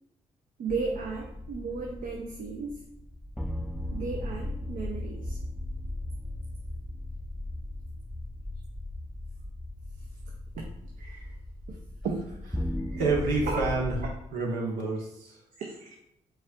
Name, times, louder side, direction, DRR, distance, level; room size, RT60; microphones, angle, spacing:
voice 1, 0.6-2.9 3.9-5.4 10.5-10.7 11.0-11.3 11.7-11.8 12.0-12.2 12.8-13.0 13.5-13.6 15.6-16.0, right 4 dB, 65° right, 0 dB, 0.6 m, -35 dB
sound 1, 0.7-14.2, left 1 dB, ahead, 0.4 m, -37 dB
voice 2, 13.0-14.0 14.3-15.4, right 3 dB, 85° right, -1 dB, 0.9 m, -28 dB
5.5 x 3.8 x 2.3 m, 0.81 s
hypercardioid pair, 45°, 15 cm